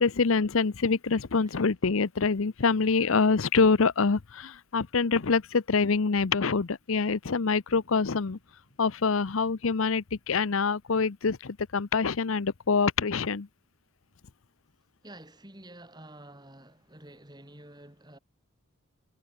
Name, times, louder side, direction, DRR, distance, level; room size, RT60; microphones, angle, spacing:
voice 1, 0.0-8.4 8.8-13.5, left 4 dB, 70° left, 0.7 m, -25 dB
sound 1, 7.6-11.3, equal, 55° left, 5.5 m, -65 dB
voice 2, 15.0-18.2, right 1 dB, 20° right, 4.1 m, -49 dB
head